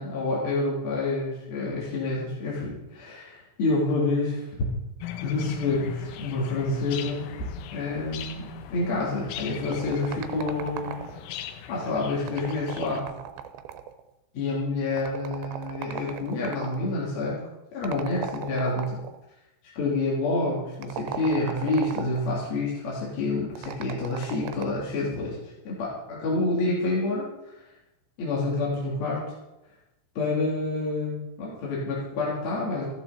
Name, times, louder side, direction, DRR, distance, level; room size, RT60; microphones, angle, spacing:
voice 1, 0.0-4.4 5.2-7.3 7.7-10.9 11.7-13.1 14.3-17.4 17.7-18.9 19.7-25.4 25.6-27.3 28.2-29.2 30.2-32.9, left 2 dB, 50° left, -6 dB, 5.0 m, -28 dB
sound 1, 5.0-13.0, left 10 dB, 75° left, 2.8 m, -40 dB
sound 2, 9.7-11.3 12.2-14.0 15.0-16.8 17.8-19.2 20.7-22.3 23.6-24.9, right 9 dB, 75° right, 2.9 m, -37 dB
14.5 x 13.5 x 4.3 m, 0.95 s
omnidirectional pair, 5.6 m